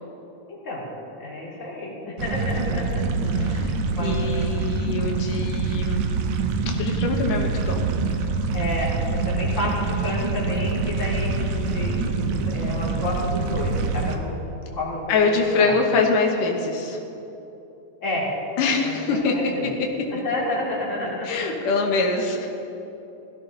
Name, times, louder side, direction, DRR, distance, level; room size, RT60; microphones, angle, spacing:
voice 1, 0.5-0.9 1.2-4.3 8.5-14.4 14.7-15.8 18.0-18.3 18.8-19.7 20.1-21.3 21.5-22.2, left 1 dB, 25° left, -5 dB, 2.9 m, -31 dB
sound 1, 2.2-14.2, right 4 dB, 70° right, 2.1 m, -25 dB
voice 2, 4.0-6.1 6.8-7.8 15.1-17.0 18.6-19.3 21.2-22.5, left 4 dB, 85° left, 1 dB, 2.7 m, -23 dB
17.0 x 14.5 x 3.9 m, 3.0 s
omnidirectional pair, 3.6 m